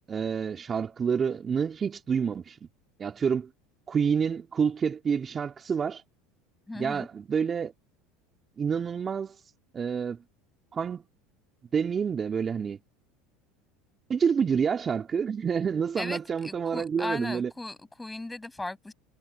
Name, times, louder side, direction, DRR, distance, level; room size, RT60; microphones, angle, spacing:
voice 1, 0.1-2.6 3.0-3.5 3.9-6.0 6.8-7.7 8.6-9.3 9.7-10.2 10.7-11.0 11.7-12.8 14.1-17.5, right 6 dB, 30° right, 2.9 m, -28 dB
voice 2, 6.7-7.1 16.0-18.9, left 2 dB, 10° left, 8.0 m, -37 dB
hypercardioid pair, 80°, 0 cm